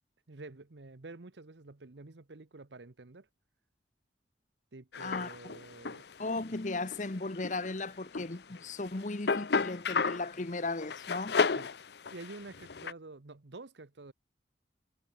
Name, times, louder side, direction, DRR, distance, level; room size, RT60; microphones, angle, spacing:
voice 1, 0.3-3.3 4.7-6.1 11.6-11.7 12.1-14.1, right 3 dB, 75° right, 1.0 m, -49 dB
sound 1, 4.9-6.3 6.9-7.8 8.1-10.4 10.8-12.9, left 5 dB, 65° left, 0.7 m, -32 dB
voice 2, 5.0-5.3 6.2-11.4, left 3 dB, 40° left, 1.0 m, -36 dB
head